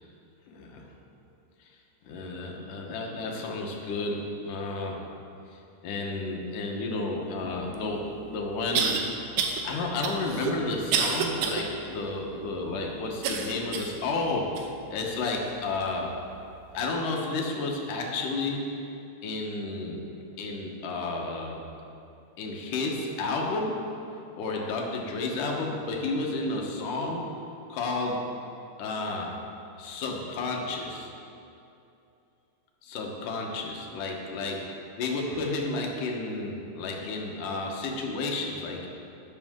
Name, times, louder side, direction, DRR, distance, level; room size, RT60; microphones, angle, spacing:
voice 1, 0.5-0.9 2.1-5.0 5.5-9.0 9.6-16.1 16.7-18.9 19.2-20.0 20.4-21.6 22.4-23.8 24.1-27.2 27.7-28.3 28.8-29.3 29.8-31.1 32.8-38.9, left 3 dB, 75° left, 0 dB, 2.8 m, -31 dB
sound 1, 7.7-7.8 8.8-9.0 9.4-9.6 10.0-11.6 12.1-12.2 13.2-14.0 14.6-14.7 15.4-15.5, right 6 dB, 80° right, 2.3 m, -28 dB
13.0 x 10.5 x 3.7 m, 2.7 s
omnidirectional pair, 3.7 m